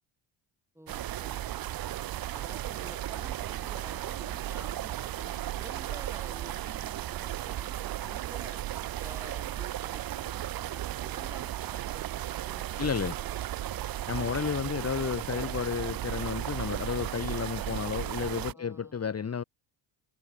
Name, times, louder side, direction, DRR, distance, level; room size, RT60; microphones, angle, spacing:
voice 1, 0.7-1.6 2.3-8.6 9.0-13.4 13.7-13.9 18.5-19.1, right 1 dB, 5° right, 7.1 m, -51 dB
sound 1, 0.9-18.5, right 13 dB, 50° right, 0.7 m, -35 dB
voice 2, 12.8-13.1 14.1-19.4, left 6 dB, 30° left, 1.5 m, -32 dB
supercardioid pair, 70°, 46 cm